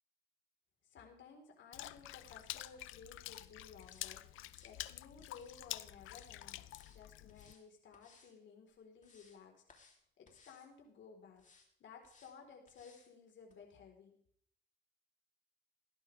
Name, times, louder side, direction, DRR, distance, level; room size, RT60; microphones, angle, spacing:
voice 1, 0.8-9.6 10.2-11.5 11.8-14.1, left 5 dB, 70° left, 2 dB, 4.2 m, -57 dB
Water / Splash splatter, 1.7-7.5, left 15 dB, 85° left, 0.6 m, -48 dB
sound 1, 2.3-2.8 3.2-3.5 3.8-4.1 4.4-5.6 6.0-6.3 6.6-7.0 7.3-7.6 7.9-8.3 8.7-9.4 9.7-10.0 10.3-10.7 11.4-11.7 12.0-12.3 12.7-13.1 13.5-13.6, left 4 dB, 40° left, 3.2 m, -66 dB
16.5 x 12.0 x 3.5 m, 0.65 s
cardioid pair, 90°, 20 cm